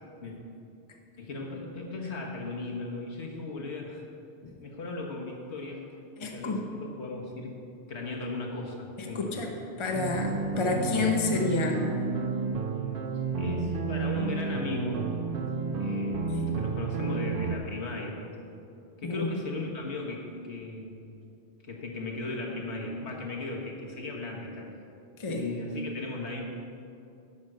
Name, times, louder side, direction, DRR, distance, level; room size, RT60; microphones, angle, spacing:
voice 1, 1.2-4.0 4.6-5.9 6.2-7.5 7.9-9.5 13.4-15.1 15.8-18.5 19.0-21.1 21.6-24.7 25.3-26.4, left 2 dB, 70° left, -1 dB, 1.6 m, -37 dB
voice 2, 6.2-6.6 9.0-9.5 9.8-11.8 16.3-16.5 19.0-19.3 25.2-25.4, left 3 dB, 30° left, 1 dB, 0.9 m, -29 dB
sound 1, 9.9-17.6, right 4 dB, 55° right, 0.9 m, -31 dB
10.5 x 6.1 x 6.5 m, 2.6 s
omnidirectional pair, 1.2 m